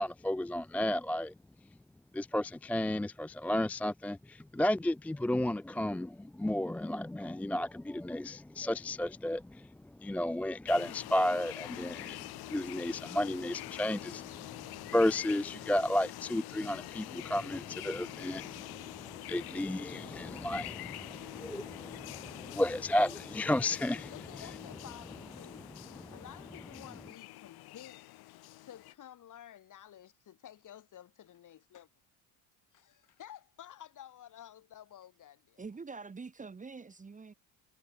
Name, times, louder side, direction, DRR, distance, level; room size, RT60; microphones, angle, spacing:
voice 1, 0.0-1.3 2.1-9.7 10.0-24.1, left 1 dB, 5° left, 0.4 m, -33 dB
sound 1, 10.7-28.9, left 18 dB, 65° left, 3.7 m, -46 dB
voice 2, 24.1-25.7 26.1-28.1 28.6-31.9 32.7-35.6, left 11 dB, 45° left, 5.4 m, -52 dB
voice 3, 35.6-37.3, right 4 dB, 20° right, 1.6 m, -45 dB
supercardioid pair, 85°, 41 cm